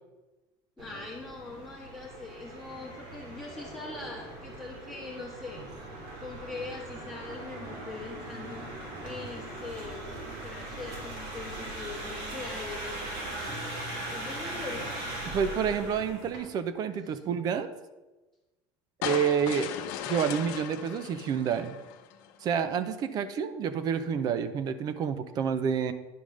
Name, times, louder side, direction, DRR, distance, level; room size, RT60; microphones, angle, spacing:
voice 1, 0.8-5.7 6.2-8.6 9.0-10.0 10.4-13.2 14.1-14.9 17.1-17.3 23.1-23.2 23.5-23.6, left 3 dB, 5° left, -5 dB, 1.2 m, -42 dB
sound 1, 0.8-16.4, right 1 dB, 85° right, 3.1 m, -40 dB
voice 2, 15.3-17.7 19.0-19.7 20.1-21.7 22.4-25.9, right 7 dB, 40° right, 11 dB, 0.6 m, -29 dB
sound 2, 19.0-22.3, left 10 dB, 85° left, 0.8 m, -37 dB
10.0 x 3.6 x 6.3 m, 1.1 s
cardioid pair, 150°, 10 cm